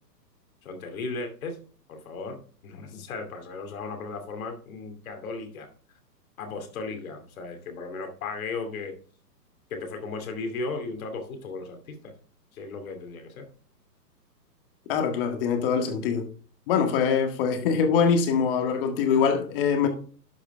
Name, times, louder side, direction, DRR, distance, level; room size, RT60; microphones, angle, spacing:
voice 1, 0.6-1.6 1.9-5.7 6.4-8.9 9.7-12.1 12.5-13.5, left 3 dB, 55° left, 2.6 m, -36 dB
voice 2, 14.9-16.3 16.7-19.9, left 6 dB, 35° left, 1.7 m, -23 dB
12.0 x 4.9 x 3.4 m
hypercardioid pair, 145°, 50 cm